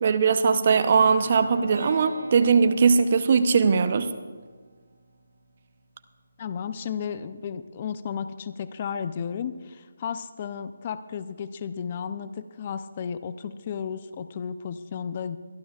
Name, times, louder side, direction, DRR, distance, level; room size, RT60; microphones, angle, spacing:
voice 1, 0.0-4.1, right 5 dB, 45° right, 11 dB, 0.8 m, -20 dB
sound 1, 0.8-4.8, right 3 dB, 70° right, 2.8 m, -40 dB
voice 2, 6.4-15.4, left 7 dB, 35° left, 12 dB, 0.5 m, -33 dB
23.5 x 12.5 x 2.4 m, 1.5 s
figure-of-eight pair, 155°, 0 cm